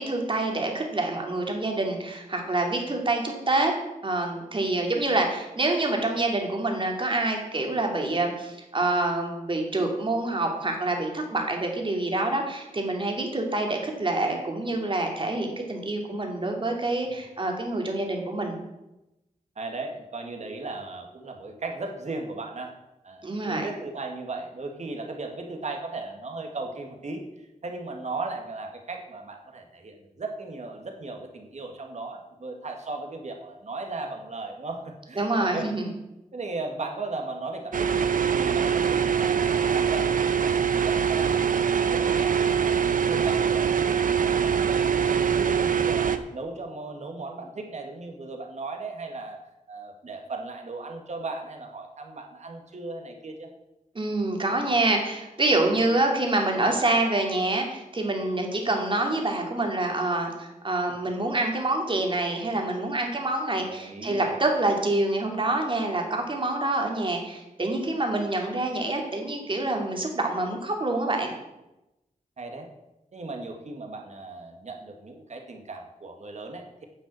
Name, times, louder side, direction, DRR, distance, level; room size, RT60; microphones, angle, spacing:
voice 1, 0.0-3.7 4.0-18.6 23.2-23.7 35.2-35.9 53.9-71.3, right 2 dB, 35° right, 2 dB, 2.5 m, -26 dB
voice 2, 19.6-22.7 23.0-35.7 36.3-38.0 38.3-42.7 43.1-46.1 46.3-49.4 49.7-53.5 63.6-64.4 72.4-72.7 73.1-76.8, right 3 dB, 55° right, 3 dB, 2.0 m, -37 dB
sound 1, 37.7-46.2, right 7 dB, 70° right, 0.8 m, -23 dB
10.5 x 6.1 x 8.3 m, 0.95 s
wide cardioid pair, 110°, 14 cm